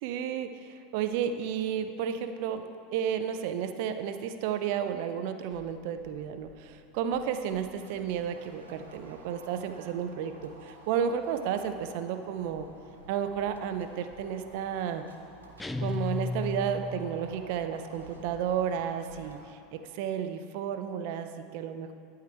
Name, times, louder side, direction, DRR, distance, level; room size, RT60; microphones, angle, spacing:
voice 1, 0.0-2.6 2.9-10.3 10.6-12.7 13.1-15.0 15.8-19.4 19.7-21.9, right 8 dB, 60° right, 9 dB, 0.5 m, -32 dB
sound 1, 5.5-19.4, right 2 dB, 85° right, 1.0 m, -52 dB
sound 2, 15.6-17.3, left 3 dB, 10° left, 0.4 m, -33 dB
11.5 x 4.8 x 4.5 m, 2.5 s
hypercardioid pair, 85°, 0 cm